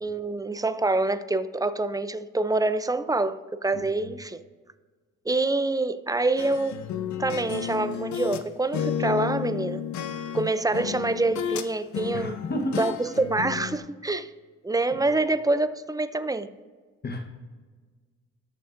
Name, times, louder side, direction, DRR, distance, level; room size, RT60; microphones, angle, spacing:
voice 1, 0.0-4.4 5.3-6.8 7.2-9.9 10.3-12.4 12.8-14.3 14.6-16.5, right 2 dB, 10° right, 0.4 m, -26 dB
sound 1, 6.4-8.5 8.7-11.7 11.9-13.8, left 9 dB, 70° left, 0.8 m, -32 dB
voice 2, 12.1-13.0 14.9-15.0 17.0-17.3, left 1 dB, 35° left, 1.1 m, -31 dB
18.5 x 6.9 x 2.6 m
cardioid pair, 90°, 30 cm